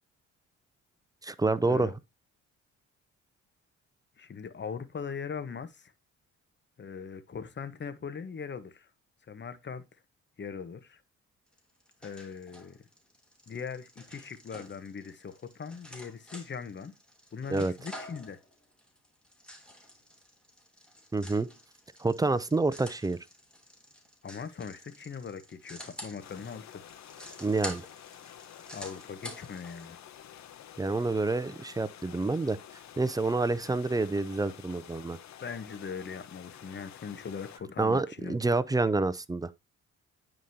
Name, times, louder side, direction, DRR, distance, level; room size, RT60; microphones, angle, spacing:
voice 1, 1.2-1.9 17.5-17.7 21.1-21.5 22.0-23.2 27.4-27.9 30.8-32.6 33.0-35.2 37.8-39.5, right 3 dB, 10° right, 0.5 m, -28 dB
voice 2, 4.2-5.9 6.8-8.9 9.3-9.8 10.4-11.0 12.0-12.8 13.5-16.9 17.3-18.4 24.2-26.8 28.7-30.0 35.4-38.4, left 6 dB, 35° left, 1.2 m, -40 dB
sound 1, 11.5-29.8, equal, 5° left, 3.0 m, -48 dB
sound 2, 26.2-37.6, left 10 dB, 65° left, 1.0 m, -50 dB
9.3 x 5.1 x 2.8 m
cardioid pair, 90°, 30 cm